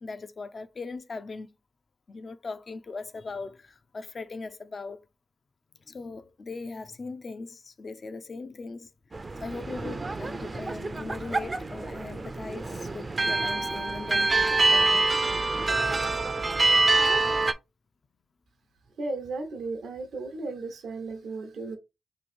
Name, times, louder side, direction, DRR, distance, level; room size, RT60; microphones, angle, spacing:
voice 1, 0.0-1.5 2.1-5.1 5.9-8.9 9.4-15.1, left 3 dB, 55° left, 0.4 m, -39 dB
sound 1, 9.1-17.5, right 3 dB, 40° right, 0.4 m, -26 dB
voice 2, 19.0-21.8, right 3 dB, 80° right, 0.7 m, -35 dB
3.0 x 2.5 x 4.3 m
cardioid pair, 50°, 0 cm